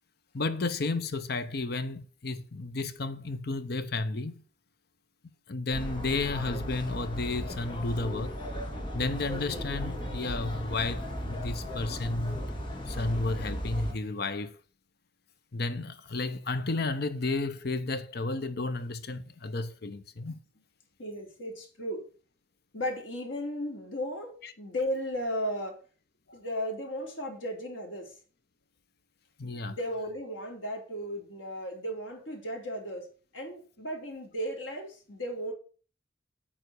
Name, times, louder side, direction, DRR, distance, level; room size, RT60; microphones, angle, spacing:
voice 1, 0.3-4.4 5.5-8.3 8.9-12.4 12.9-14.6 15.5-20.4 24.4-24.5 26.3-26.4 29.4-29.8, left 3 dB, 55° left, 0.8 m, -32 dB
sound 1, 5.7-13.9, equal, 25° left, 2.2 m, -36 dB
voice 2, 21.0-22.1 22.7-25.8 26.3-28.1 29.4-33.0 33.3-35.5, equal, 80° left, 4.3 m, -35 dB
9.1 x 5.9 x 8.3 m
head